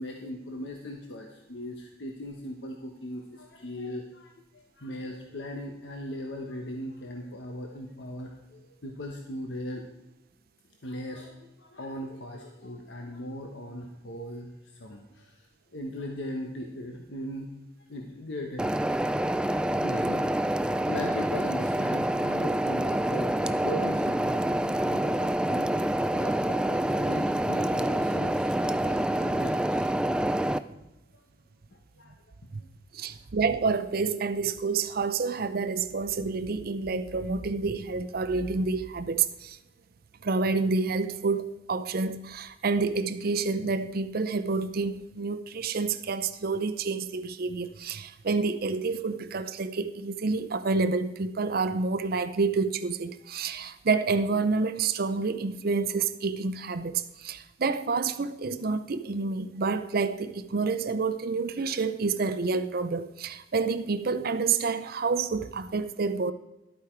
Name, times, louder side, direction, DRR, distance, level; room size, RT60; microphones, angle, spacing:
voice 1, 0.0-9.8 10.8-17.5 17.9-18.7 19.8-20.4 20.9-30.6 31.1-31.2 32.0-32.1 32.6-32.7 33.0-33.2, left 1 dB, 90° left, 1.1 m, -39 dB
sound 1, 18.6-30.6, right 1 dB, 5° right, 0.3 m, -27 dB
voice 2, 32.9-39.6 40.2-66.3, right 4 dB, 55° right, 0.6 m, -28 dB
12.0 x 8.6 x 4.5 m
head